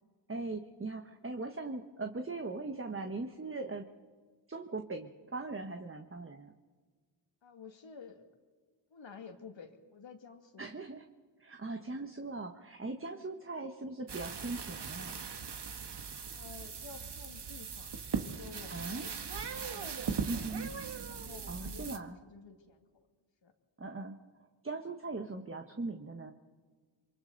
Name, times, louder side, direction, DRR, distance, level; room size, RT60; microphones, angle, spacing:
voice 1, 0.3-3.8 4.5-6.5 10.6-11.0 11.4-15.2 18.7-19.1 20.3-20.7 21.5-22.2 23.8-24.2 24.6-26.3, right 3 dB, 25° right, 5 dB, 1.4 m, -40 dB
voice 2, 7.4-8.2 8.9-10.9 11.8-12.0 13.1-13.2 16.3-20.5 21.1-22.8 23.4-23.5 25.3-25.4, left 5 dB, 70° left, 4 dB, 2.4 m, -52 dB
sound 1, 14.1-22.0, right 5 dB, 60° right, 1.5 m, -39 dB
27.5 x 23.5 x 4.1 m, 1.5 s
cardioid pair, 55°, 47 cm